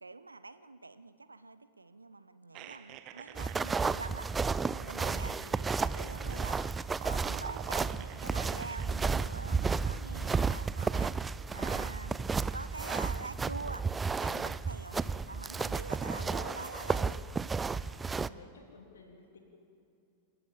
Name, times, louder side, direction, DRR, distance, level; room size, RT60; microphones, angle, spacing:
voice 1, 0.0-4.3 4.8-5.3 5.8-6.7 7.0-11.1 11.5-12.2 12.5-13.9 14.2-15.0 15.3-17.3, right 3 dB, 80° right, 14 dB, 0.8 m, -45 dB
sound 1, 2.5-8.9, right 11 dB, 40° right, 1.1 m, -48 dB
sound 2, 3.3-18.3, right 4 dB, 15° right, 0.5 m, -33 dB
voice 2, 5.0-5.5 14.7-15.4 16.0-16.7 18.1-19.4, left 4 dB, 70° left, 2 dB, 3.4 m, -52 dB
29.0 x 14.0 x 7.2 m, 2.5 s
figure-of-eight pair, 90°, 0 cm